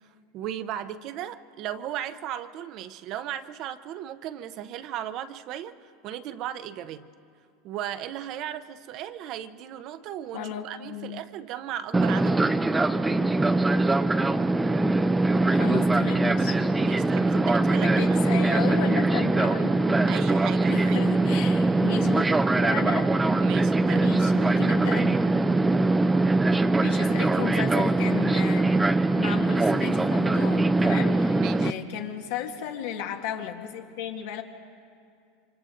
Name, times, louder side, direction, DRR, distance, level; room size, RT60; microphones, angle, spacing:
voice 1, 0.3-5.7 6.0-7.1 7.6-12.5 16.8-18.2 20.1-21.0 21.3-21.4 23.4-24.1 31.3-31.7, right 11 dB, 50° right, 11 dB, 0.8 m, -36 dB
voice 2, 10.3-11.2 15.5-16.6 17.8-19.7 20.7-23.1 23.9-25.3 26.5-34.4, left 9 dB, 70° left, 3 dB, 1.9 m, -34 dB
Fixed-wing aircraft airplane, 11.9-31.7, right 2 dB, 10° right, 0.6 m, -22 dB
29.0 x 25.0 x 3.9 m, 2.4 s
supercardioid pair, 120°, 0 cm